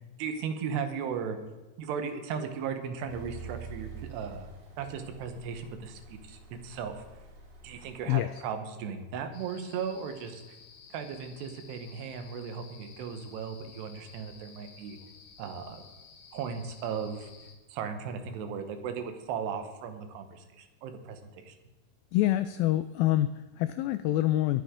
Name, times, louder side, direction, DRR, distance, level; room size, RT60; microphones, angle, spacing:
voice 1, 0.2-1.4 1.8-4.5 4.8-7.0 7.6-10.4 10.9-15.0 15.4-15.8 16.3-17.3 17.7-21.6, right 6 dB, 85° right, 7 dB, 3.3 m, -36 dB
sound 1, 3.1-8.6, right 5 dB, 60° right, 4.1 m, -48 dB
sound 2, 9.3-17.6, left 5 dB, 65° left, 3.1 m, -54 dB
voice 2, 22.1-24.6, left 14 dB, 85° left, 12 dB, 2.0 m, -26 dB
21.0 x 8.4 x 3.8 m, 1.2 s
omnidirectional pair, 4.7 m